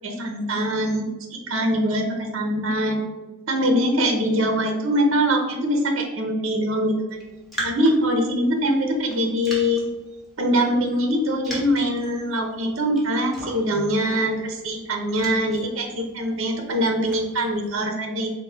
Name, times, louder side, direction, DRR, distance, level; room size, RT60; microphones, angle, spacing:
voice 1, 0.0-3.0 3.5-7.0 7.6-9.9 10.4-18.3, equal, 65° right, 3 dB, 0.7 m, -23 dB
Raindrop, 7.1-17.8, right 1 dB, ahead, 1.3 m, -41 dB
5.1 x 2.1 x 4.5 m, 1.2 s
head